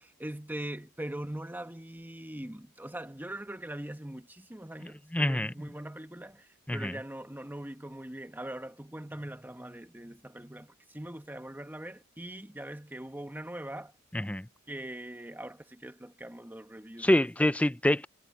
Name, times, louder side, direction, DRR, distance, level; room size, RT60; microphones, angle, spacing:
voice 1, 0.0-13.9 14.7-17.3, right 1 dB, 10° right, 1.2 m, -41 dB
voice 2, 5.1-5.5 6.7-6.9 14.1-14.5 17.0-18.1, left 1 dB, 5° left, 0.5 m, -26 dB
head